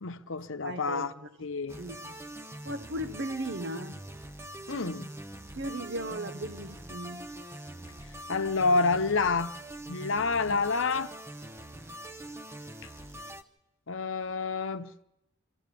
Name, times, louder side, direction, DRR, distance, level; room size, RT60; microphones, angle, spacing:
voice 1, 0.0-1.1 1.4-1.8 4.7-5.1 8.3-9.5 9.9-11.1 13.9-14.9, left 4 dB, 70° left, 0.9 m, -28 dB
voice 2, 0.6-1.3 1.8-2.2 2.6-4.0 5.5-7.3 10.5-10.6, right 1 dB, 55° right, 1.1 m, -37 dB
sound 1, 1.7-13.4, right 1 dB, 15° right, 0.8 m, -43 dB
25.5 x 13.5 x 8.5 m
head